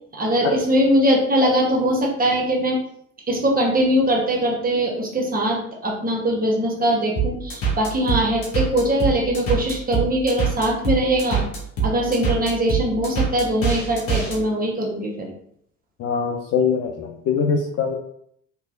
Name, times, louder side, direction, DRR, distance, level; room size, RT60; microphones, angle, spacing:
voice 1, 0.1-2.8 3.3-11.5 11.8-15.3, right 1 dB, 20° right, -2 dB, 1.1 m, -21 dB
sound 1, 7.2-14.4, right 5 dB, 65° left, 1.4 m, -24 dB
voice 2, 16.0-18.0, left 6 dB, 40° left, 3 dB, 0.5 m, -22 dB
3.3 x 2.9 x 2.4 m, 0.68 s
figure-of-eight pair, 60°, 41 cm